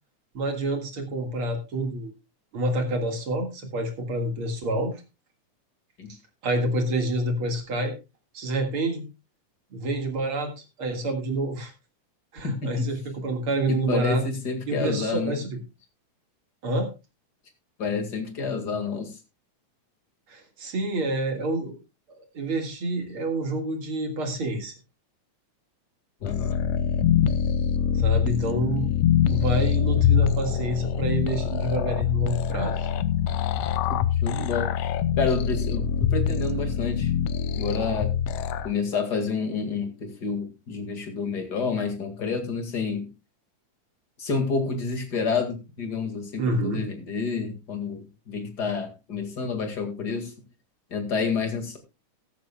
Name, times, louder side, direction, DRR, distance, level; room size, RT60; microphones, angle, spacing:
voice 1, 0.3-2.1 2.5-5.0 6.4-7.9 8.3-9.0 9.7-11.7 12.3-14.2 14.7-15.6 16.6-16.9 20.3-21.8 22.3-24.7 27.9-28.9 29.3-32.9 46.4-46.8, right 1 dB, 45° right, 4 dB, 2.4 m, -28 dB
voice 2, 12.4-12.9 13.7-15.4 17.8-19.2 26.2-26.6 33.9-34.7 35.2-37.1 37.6-38.1 38.6-43.1 44.2-50.3 50.9-51.8, left 4 dB, 35° left, 5 dB, 2.1 m, -29 dB
sound 1, 26.2-38.7, left 8 dB, 80° left, 1.5 m, -24 dB
14.5 x 13.5 x 2.3 m, 0.27 s
omnidirectional pair, 3.6 m